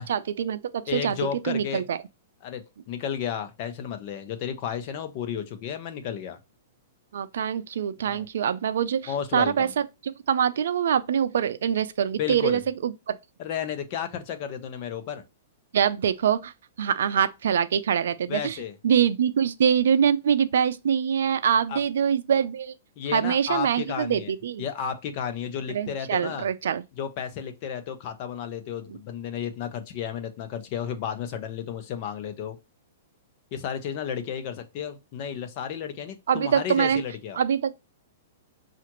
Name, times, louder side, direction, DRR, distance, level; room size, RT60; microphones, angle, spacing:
voice 1, 0.1-1.2 1.4-2.0 7.1-9.7 10.0-13.2 15.7-16.5 16.8-18.6 18.8-22.7 23.1-24.7 25.7-26.8 36.3-37.0 37.3-37.8, right 8 dB, 75° right, 0.4 m, -24 dB
voice 2, 0.9-1.9 2.4-6.4 8.0-8.2 9.1-9.7 12.2-12.6 13.4-15.2 18.3-18.7 21.7-21.8 23.0-24.3 24.6-26.5 27.0-32.6 33.5-37.4, left 8 dB, 45° left, 0.9 m, -32 dB
5.7 x 2.5 x 3.0 m
hypercardioid pair, 140°, 0 cm